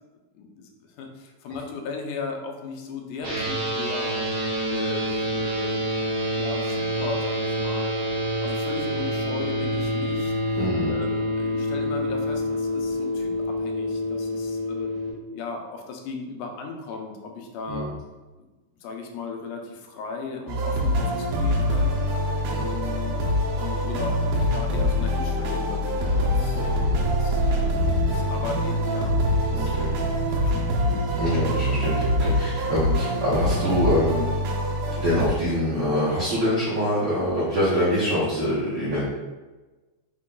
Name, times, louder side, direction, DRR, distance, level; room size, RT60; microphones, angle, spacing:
voice 1, 0.3-4.2 4.7-6.0 6.3-8.0 8.4-10.3 10.9-14.9 15.3-17.9 18.8-22.0 22.6-23.3 23.5-26.6 27.1-29.1 29.5-29.8 30.2-31.0, left 4 dB, 90° left, 3 dB, 2.1 m, -36 dB
sound 1, 3.2-15.1, equal, 55° right, 1.2 m, -27 dB
voice 2, 10.6-10.9 17.7-17.9 22.5-22.6 26.5-27.1 29.5-29.9 31.2-34.2 34.9-39.1, equal, 75° right, -9 dB, 1.0 m, -25 dB
sound 2, 20.5-35.3, equal, 90° right, 2.2 m, -24 dB
5.5 x 2.2 x 3.7 m, 1.2 s
omnidirectional pair, 3.5 m